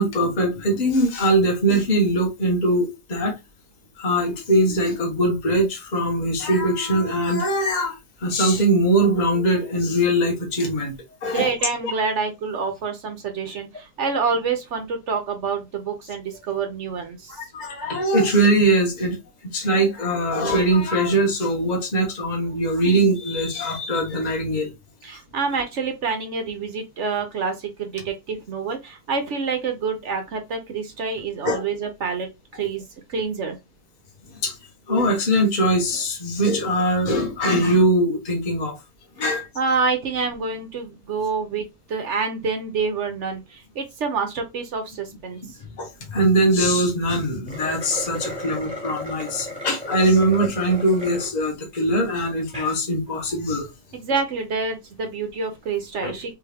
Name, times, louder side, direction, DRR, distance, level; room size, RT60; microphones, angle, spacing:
voice 1, 0.0-3.4 4.0-10.9 11.2-11.5 17.5-19.2 19.5-24.7 31.4-31.6 34.4-34.5 34.9-38.8 39.2-39.4 45.4-45.5 45.8-53.7 56.0-56.1, right 1 dB, 25° left, 1.2 m, -21 dB
voice 2, 11.2-17.4 25.0-32.8 33.1-33.6 39.6-45.4 53.9-56.3, right 5 dB, 60° right, 0.7 m, -27 dB
sound 1, 47.4-51.3 51.8-51.9 52.4-52.8, equal, 5° right, 1.9 m, -34 dB
3.5 x 3.4 x 3.4 m
omnidirectional pair, 2.0 m